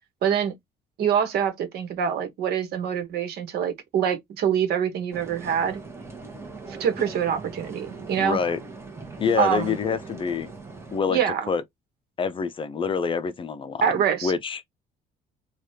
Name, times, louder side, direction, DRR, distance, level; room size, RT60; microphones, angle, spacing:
voice 1, 0.2-0.5 1.0-5.8 6.8-8.4 9.4-9.8 11.1-11.5 13.8-14.3, right 8 dB, 70° right, 1.1 m, -25 dB
sound 1, 5.1-11.0, right 4 dB, 15° right, 1.0 m, -40 dB
voice 2, 8.2-8.6 9.2-10.5 10.9-11.2 11.5-11.6 12.2-13.8 14.2-14.6, left 5 dB, 30° left, 0.5 m, -26 dB
3.3 x 2.3 x 2.7 m
cardioid pair, 110°, 17 cm